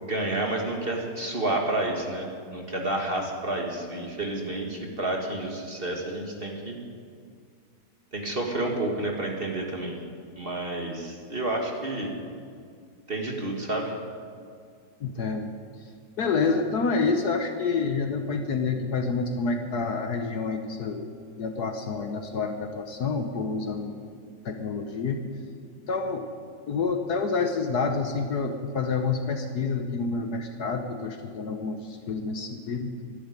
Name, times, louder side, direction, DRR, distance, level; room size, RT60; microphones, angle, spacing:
voice 1, 0.0-6.8 8.1-9.9 10.3-12.1 13.1-13.9, right 2 dB, 30° right, 1 dB, 1.9 m, -30 dB
voice 2, 15.0-15.5 16.2-21.1 21.4-24.0 24.4-25.2 25.9-26.3 26.7-32.9, left 4 dB, 60° left, 6 dB, 1.4 m, -28 dB
12.5 x 11.0 x 9.8 m, 2.2 s
omnidirectional pair, 2.1 m